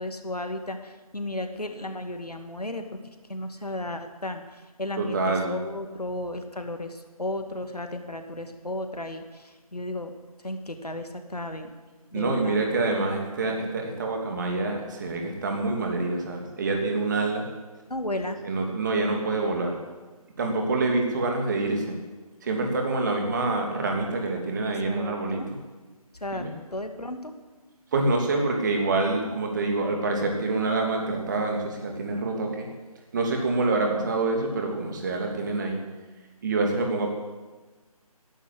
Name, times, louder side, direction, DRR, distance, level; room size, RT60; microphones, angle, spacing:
voice 1, 0.0-2.8 3.3-4.4 4.8-5.2 5.5-9.2 9.7-10.1 10.4-11.7 12.1-12.6 17.9-18.4 24.9-25.5 26.2-26.4 26.7-27.3, left 1 dB, 85° left, 6 dB, 2.3 m, -34 dB
voice 2, 5.0-5.6 12.1-17.5 18.4-19.7 20.4-22.0 22.4-25.6 26.3-26.5 27.9-32.7 33.1-35.8 36.4-37.1, right 3 dB, 30° right, 2 dB, 2.8 m, -26 dB
16.5 x 11.0 x 7.9 m, 1.3 s
figure-of-eight pair, 155°, 19 cm